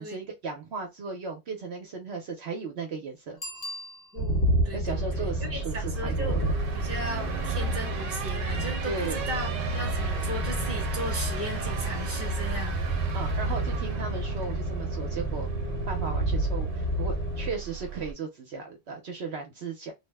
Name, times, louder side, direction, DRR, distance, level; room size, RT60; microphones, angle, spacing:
voice 1, 0.0-3.4 4.7-6.5 8.8-9.2 13.1-15.5 15.9-19.9, right 4 dB, 65° right, 0.9 m, -36 dB
Bicycle bell, 3.4-4.6 10.0-10.1, left 1 dB, 30° left, 1.0 m, -40 dB
voice 2, 4.1-6.4 6.7-9.5 9.7-12.8, right 1 dB, 10° right, 1.0 m, -37 dB
sound 1, 4.2-17.5, right 1 dB, 65° left, 1.3 m, -30 dB
sound 2, 4.8-18.1, right 7 dB, 85° right, 1.0 m, -36 dB
2.8 x 2.0 x 3.3 m
omnidirectional pair, 1.3 m